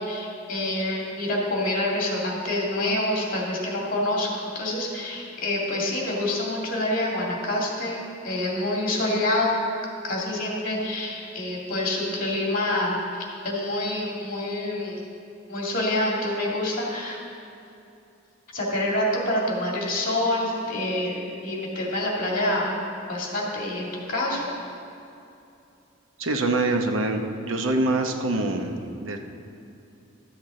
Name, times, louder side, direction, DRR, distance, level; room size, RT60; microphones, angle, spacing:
voice 1, 0.0-9.6 10.0-15.0 15.5-17.2 18.5-22.7 23.1-24.4, left 1 dB, 45° left, -3 dB, 2.3 m, -27 dB
voice 2, 26.2-29.2, right 2 dB, 85° right, 5 dB, 0.9 m, -25 dB
13.0 x 8.0 x 3.8 m, 2.7 s
head